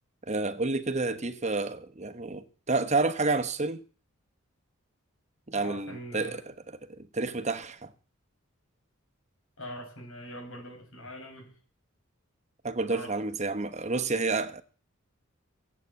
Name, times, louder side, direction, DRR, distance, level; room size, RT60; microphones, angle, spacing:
voice 1, 0.3-3.8 5.5-7.9 12.6-14.6, right 3 dB, 30° right, 1.1 m, -30 dB
voice 2, 5.5-6.4 9.6-11.6 12.9-13.2, equal, 70° left, 6.8 m, -42 dB
16.5 x 8.4 x 8.2 m
head